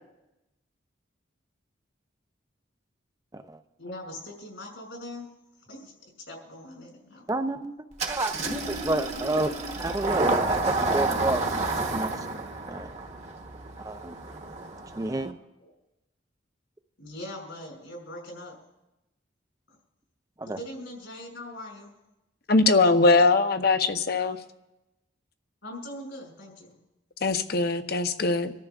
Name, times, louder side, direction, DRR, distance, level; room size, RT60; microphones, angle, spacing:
voice 1, 3.8-5.3 5.7-5.9 6.3-7.3 15.6-15.7 17.0-18.5 19.7-19.8 20.4-21.9 25.6-26.8, left 1 dB, 75° left, 0 dB, 5.9 m, -41 dB
voice 2, 7.3-9.5 9.8-11.6 11.9-12.1 12.7-12.9 13.8-14.2 15.0-15.4 20.4-20.6, right 2 dB, 20° right, 9 dB, 0.5 m, -30 dB
Engine starting, 8.0-15.3, right 3 dB, 35° right, 1.1 m, -30 dB
voice 3, 22.5-24.4 27.2-28.5, left 3 dB, 50° left, 8 dB, 0.8 m, -21 dB
26.0 x 13.5 x 2.4 m, 0.97 s
head